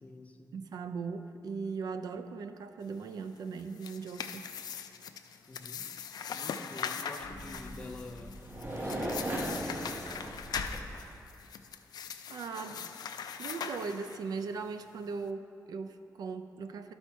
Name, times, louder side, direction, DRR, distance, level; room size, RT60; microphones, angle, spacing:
voice 1, 0.0-0.5 5.5-5.9 6.3-8.4 8.8-10.0, left 2 dB, 20° left, 4 dB, 0.5 m, -46 dB
voice 2, 0.5-4.5 12.3-12.9 13.4-16.9, right 5 dB, 75° right, 8 dB, 0.4 m, -39 dB
sound 1, 3.5-14.4, left 7 dB, 85° left, 0.4 m, -41 dB
sound 2, 7.2-10.9, right 1 dB, 30° right, 0.9 m, -38 dB
12.5 x 4.3 x 4.5 m, 2.6 s
wide cardioid pair, 155°, 7 cm